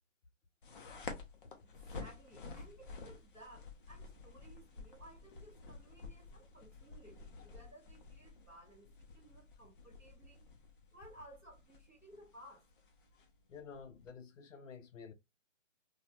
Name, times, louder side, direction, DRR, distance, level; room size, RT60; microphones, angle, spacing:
sound 1, 0.6-14.1, left 4 dB, 45° left, 0.6 m, -51 dB
voice 1, 1.6-10.4 10.9-12.7, right 1 dB, 5° left, 0.5 m, -58 dB
voice 2, 13.5-15.1, left 6 dB, 75° left, 0.7 m, -51 dB
2.9 x 2.3 x 2.4 m
hypercardioid pair, 150°, 38 cm